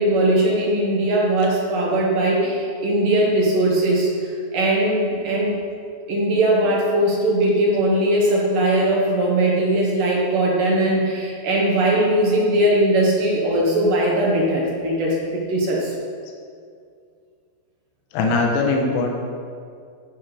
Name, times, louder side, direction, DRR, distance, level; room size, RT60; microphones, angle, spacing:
voice 1, 0.0-5.6 6.1-15.9, right 1 dB, 65° right, -3 dB, 2.4 m, -20 dB
voice 2, 18.1-19.1, left 3 dB, 75° left, 1 dB, 3.1 m, -20 dB
14.5 x 5.8 x 4.9 m, 2.3 s
omnidirectional pair, 5.2 m